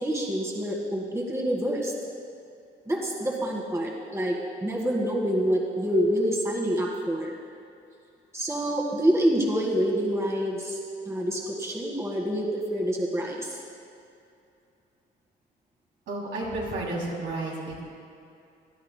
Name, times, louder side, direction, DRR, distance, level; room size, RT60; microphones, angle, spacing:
voice 1, 0.0-1.9 2.8-7.3 8.3-10.8 11.0-13.6, equal, 15° right, -2 dB, 1.7 m, -27 dB
voice 2, 16.1-17.8, right 2 dB, 75° right, -4 dB, 3.0 m, -32 dB
17.5 x 11.5 x 2.2 m, 2.5 s
cardioid pair, 90°, 20 cm